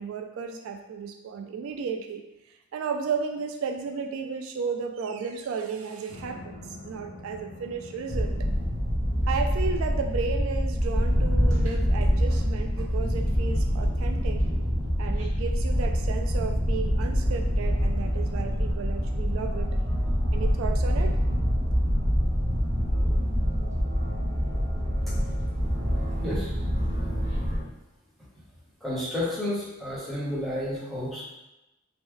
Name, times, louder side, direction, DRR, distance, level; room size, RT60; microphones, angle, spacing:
voice 1, 0.0-2.2 2.7-8.3 9.3-14.4 15.0-19.7 20.3-21.2, right 5 dB, 80° right, 6 dB, 0.3 m, -33 dB
sound 1, 6.1-17.8, left 1 dB, 55° left, 0.5 m, -46 dB
sound 2, 8.1-27.6, equal, 60° right, 1.1 m, -25 dB
voice 2, 26.2-26.5 28.8-31.2, left 1 dB, ahead, -8 dB, 0.8 m, -31 dB
3.0 x 2.2 x 3.5 m, 0.94 s
head